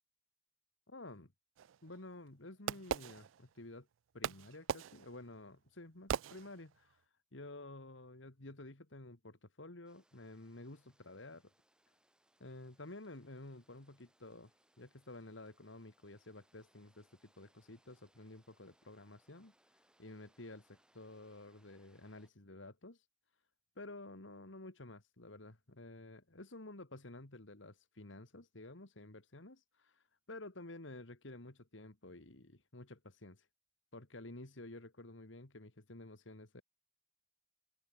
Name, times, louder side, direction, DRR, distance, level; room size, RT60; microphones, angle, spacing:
voice 1, 0.9-1.3 1.8-3.9 4.1-7.0 7.3-11.5 12.4-14.5 14.8-19.5 20.0-23.0 23.8-33.4 33.9-36.6, left 2 dB, 70° left, 2.3 m, -52 dB
Fireworks, 1.6-3.8 4.2-6.9, right 8 dB, 80° right, 0.4 m, -41 dB
sound 1, 9.8-22.3, right 1 dB, 5° right, 3.3 m, -74 dB
head